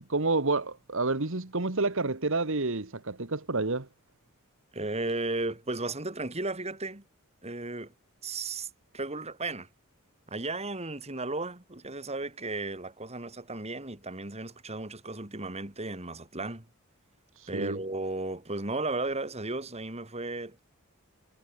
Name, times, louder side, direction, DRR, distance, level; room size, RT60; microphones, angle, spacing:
voice 1, 0.1-3.9 17.4-17.8, right 3 dB, 65° right, 1.6 m, -29 dB
voice 2, 4.7-7.0 7.4-7.9 8.2-8.7 8.9-9.7 10.3-16.7 17.5-20.6, right 2 dB, 30° right, 3.4 m, -34 dB
head